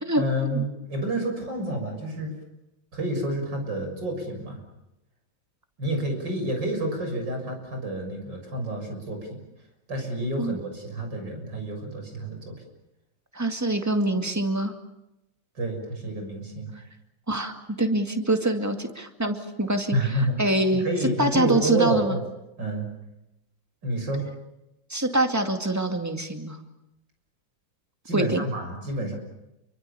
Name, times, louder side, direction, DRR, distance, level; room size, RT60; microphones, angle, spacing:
voice 1, 0.2-2.3 2.9-4.6 5.8-9.4 9.9-12.6 15.6-16.7 19.9-22.2 22.6-22.9 23.8-24.2 28.1-29.1, right 1 dB, 65° right, 3 dB, 7.3 m, -29 dB
voice 2, 13.3-14.7 17.3-20.0 20.4-20.8 21.2-22.2 24.9-26.6 28.1-28.4, right 2 dB, 10° right, 5 dB, 2.1 m, -25 dB
29.0 x 24.0 x 7.0 m, 0.89 s
omnidirectional pair, 2.1 m